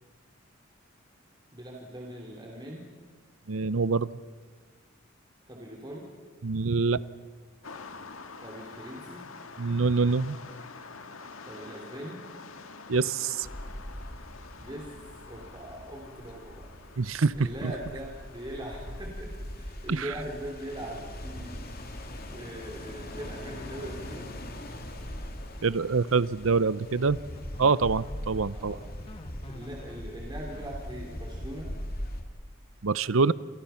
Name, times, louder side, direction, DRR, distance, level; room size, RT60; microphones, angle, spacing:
voice 1, 1.5-2.8 5.5-6.0 8.4-9.2 11.4-12.2 14.6-14.9 15.3-16.7 17.3-21.6 22.3-24.3 28.5-28.8 29.5-31.7, right 1 dB, 20° right, 3.3 m, -41 dB
voice 2, 3.5-4.1 6.4-7.0 9.6-10.4 12.9-13.5 17.0-17.5 19.9-20.1 25.6-27.2 27.6-28.7 32.8-33.3, right 4 dB, 75° right, 0.7 m, -25 dB
sound 1, 7.6-19.1, left 4 dB, 85° left, 1.8 m, -47 dB
sound 2, 13.4-32.2, left 1 dB, 45° left, 3.0 m, -41 dB
sound 3, 26.4-32.2, equal, 25° left, 1.4 m, -43 dB
30.0 x 27.0 x 5.8 m
head